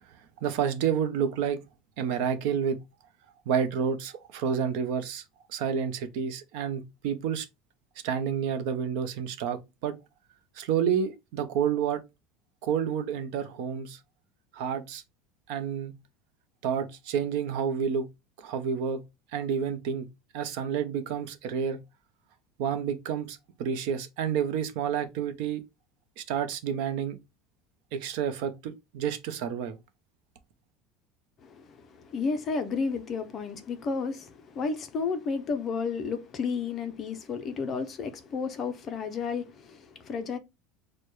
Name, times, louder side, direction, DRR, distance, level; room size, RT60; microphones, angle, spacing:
voice 1, 0.4-1.6 2.0-2.8 3.5-5.2 5.5-7.5 8.0-10.0 10.6-12.0 12.6-14.0 14.5-15.0 15.5-15.9 16.6-18.0 18.4-19.0 19.3-20.1 20.3-21.8 22.6-25.6 26.2-27.2 27.9-29.8, right 7 dB, 55° right, 0.7 m, -29 dB
voice 2, 31.4-40.4, left 5 dB, 25° left, 0.5 m, -32 dB
6.5 x 2.2 x 3.1 m
cardioid pair, 180°, 0 cm